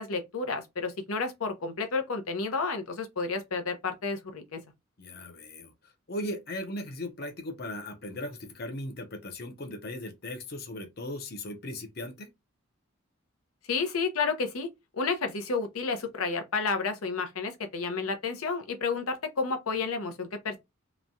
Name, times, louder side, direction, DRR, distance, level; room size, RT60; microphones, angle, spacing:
voice 1, 0.0-4.6 13.7-14.7 14.9-20.6, left 4 dB, 90° left, 0.7 m, -31 dB
voice 2, 5.0-12.3, left 1 dB, 45° left, 0.6 m, -38 dB
3.0 x 2.2 x 2.5 m
head